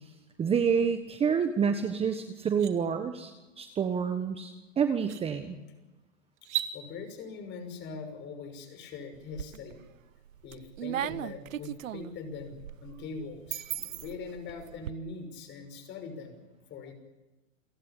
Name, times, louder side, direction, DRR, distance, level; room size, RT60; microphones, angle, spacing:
voice 1, 0.4-3.3 3.6-5.6, right 6 dB, 15° right, 8 dB, 1.4 m, -28 dB
sound 1, 1.8-1.9 2.3-2.7 4.4-4.5 5.0-5.2 6.4-6.7, right 12 dB, 60° right, 3.2 m, -35 dB
voice 2, 6.7-9.8 10.4-16.4 16.7-16.9, left 4 dB, 30° left, 8 dB, 6.0 m, -42 dB
sound 2, 9.1-9.8 10.3-14.9, right 11 dB, 80° right, 0.9 m, -37 dB
29.0 x 17.0 x 8.5 m, 1.1 s
hypercardioid pair, 135°, 39 cm